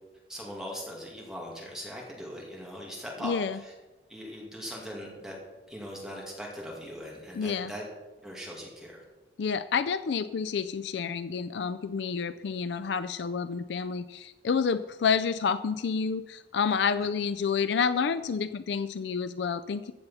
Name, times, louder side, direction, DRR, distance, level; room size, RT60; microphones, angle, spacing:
voice 1, 0.3-3.7 4.1-5.4 5.7-7.8 8.2-9.0, equal, 5° right, -3 dB, 2.2 m, -40 dB
voice 2, 3.2-3.6 7.3-7.7 9.4-19.9, left 6 dB, 70° left, 13 dB, 0.4 m, -29 dB
14.5 x 8.3 x 5.6 m, 1.2 s
head